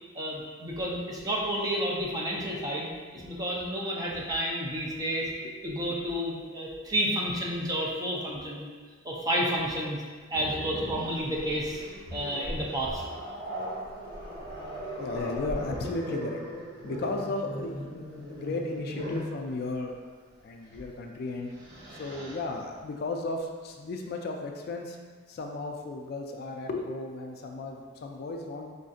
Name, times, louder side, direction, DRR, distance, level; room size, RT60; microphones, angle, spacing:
voice 1, 0.1-2.9 3.1-5.3 5.6-8.7 9.0-10.0 10.3-11.8 12.1-13.0, equal, 20° right, -4 dB, 0.5 m, -30 dB
Growling, 10.3-19.3 20.7-20.9 21.3-22.4, equal, 55° right, 0.7 m, -39 dB
voice 2, 15.0-16.4 16.8-20.0 20.4-21.5 21.9-25.0 25.3-28.7, left 2 dB, 50° left, 2 dB, 0.3 m, -35 dB
4.9 x 2.6 x 2.4 m, 1.5 s
head